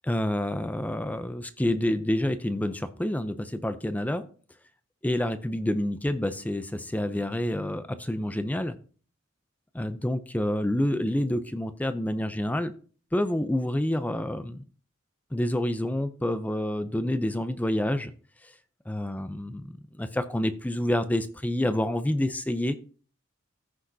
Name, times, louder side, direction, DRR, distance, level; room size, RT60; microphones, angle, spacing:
voice 1, 0.0-4.2 5.0-8.7 9.7-12.7 13.1-14.6 15.3-18.1 18.4-18.5 18.9-22.8, left 1 dB, 10° left, 10 dB, 0.4 m, -28 dB
14.5 x 6.2 x 2.7 m, 0.41 s
head